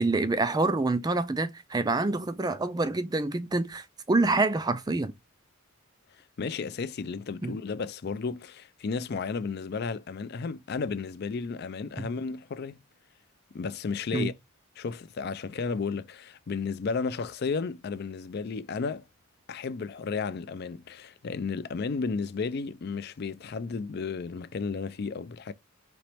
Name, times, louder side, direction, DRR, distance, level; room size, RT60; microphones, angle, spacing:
voice 1, 0.0-5.1 7.4-7.6 14.1-14.3, right 2 dB, 20° right, 0.4 m, -26 dB
voice 2, 6.4-12.8 13.5-14.3 14.8-19.1 19.5-25.5, left 5 dB, 50° left, 0.4 m, -33 dB
4.2 x 3.0 x 3.2 m
head